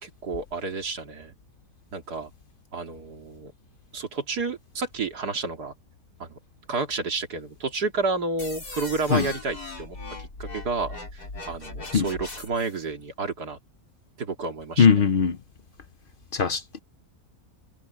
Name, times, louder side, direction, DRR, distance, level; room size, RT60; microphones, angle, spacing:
voice 1, 0.0-1.3 1.9-2.3 2.7-3.5 3.9-5.7 6.2-6.4 6.7-11.2 11.5-13.6 14.2-15.1, right 3 dB, 90° right, 3.0 m, -31 dB
sound 1, 8.4-12.8, left 2 dB, 80° left, 5.3 m, -39 dB
voice 2, 14.8-15.4 16.3-16.8, left 6 dB, 55° left, 0.6 m, -20 dB
omnidirectional pair, 1.6 m